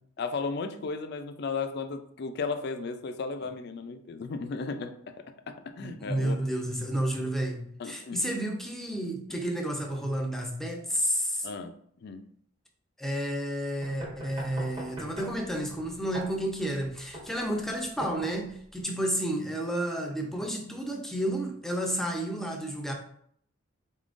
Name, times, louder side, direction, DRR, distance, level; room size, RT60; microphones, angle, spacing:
voice 1, 0.2-6.4 7.8-8.2 11.4-11.7 12.0-12.2, left 4 dB, 55° left, 0.4 m, -35 dB
voice 2, 5.8-11.5 13.0-22.9, right 1 dB, ahead, 0.5 m, -31 dB
sound 1, 13.8-18.8, right 1 dB, 25° right, 1.0 m, -42 dB
4.1 x 3.6 x 2.5 m
head